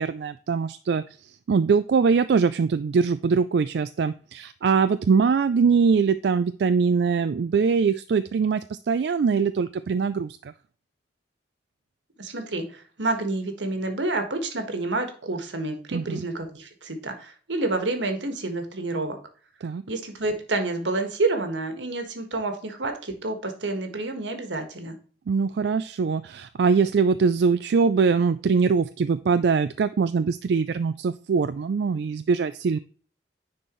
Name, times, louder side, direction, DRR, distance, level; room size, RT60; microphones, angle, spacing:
voice 1, 0.0-10.5 15.9-16.2 19.6-19.8 25.3-32.8, right 5 dB, 65° right, 11 dB, 0.3 m, -22 dB
voice 2, 12.2-19.2 19.9-25.0, right 2 dB, 85° right, 6 dB, 1.6 m, -29 dB
9.9 x 4.4 x 3.1 m, 0.42 s
head